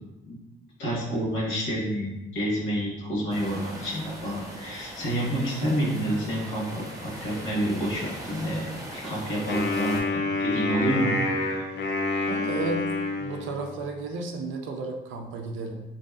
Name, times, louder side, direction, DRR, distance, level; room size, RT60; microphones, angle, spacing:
voice 1, 0.8-11.1, equal, 90° left, -5 dB, 0.9 m, -29 dB
sound 1, 3.3-10.0, right 1 dB, 15° right, 0.6 m, -40 dB
Wind instrument woodwind instrument, 9.5-13.9, left 2 dB, 60° left, 0.5 m, -28 dB
voice 2, 12.3-12.9 13.2-15.8, right 3 dB, 80° right, 2 dB, 0.4 m, -33 dB
2.6 x 2.2 x 2.3 m, 1.0 s
cardioid pair, 90°, 20 cm